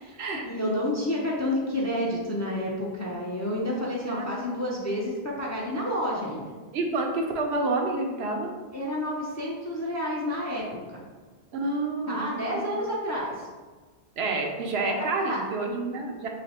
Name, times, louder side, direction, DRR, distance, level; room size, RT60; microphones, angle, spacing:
voice 1, 0.0-6.5 8.7-11.0 12.1-13.5 14.8-15.4, left 1 dB, 25° left, -3 dB, 0.4 m, -30 dB
voice 2, 6.7-8.5 11.5-12.6 14.2-16.3, right 3 dB, 70° right, 2 dB, 0.9 m, -29 dB
3.3 x 3.1 x 4.2 m, 1.4 s
omnidirectional pair, 1.1 m